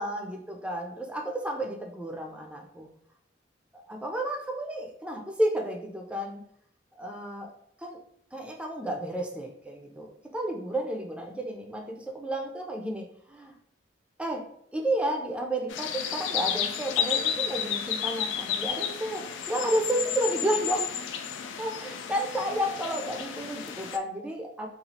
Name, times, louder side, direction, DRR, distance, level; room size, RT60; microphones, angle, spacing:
voice 1, 0.0-2.9 3.9-6.4 7.0-7.5 7.8-8.0 8.3-13.5 14.2-14.4 14.7-20.9 21.6-24.7, right 1 dB, 5° right, 1 dB, 0.3 m, -31 dB
sound 1, 15.7-24.0, left 8 dB, 80° left, 0.3 m, -32 dB
3.0 x 2.3 x 2.7 m, 0.69 s
head